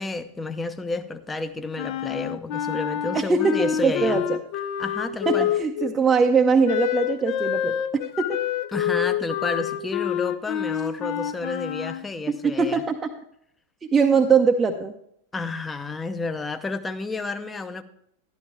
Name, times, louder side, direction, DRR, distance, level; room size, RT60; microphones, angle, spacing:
voice 1, 0.0-4.2 4.8-5.5 8.7-12.8 15.3-17.8, left 3 dB, 10° left, 10 dB, 0.8 m, -31 dB
Wind instrument woodwind instrument, 1.8-5.9 6.6-12.0, left 10 dB, 45° left, 0.7 m, -27 dB
voice 2, 3.1-4.4 5.3-8.4 12.4-13.1 13.8-14.9, right 5 dB, 15° right, 2 dB, 0.7 m, -22 dB
12.5 x 12.0 x 3.4 m, 0.71 s
figure-of-eight pair, 90°, 0 cm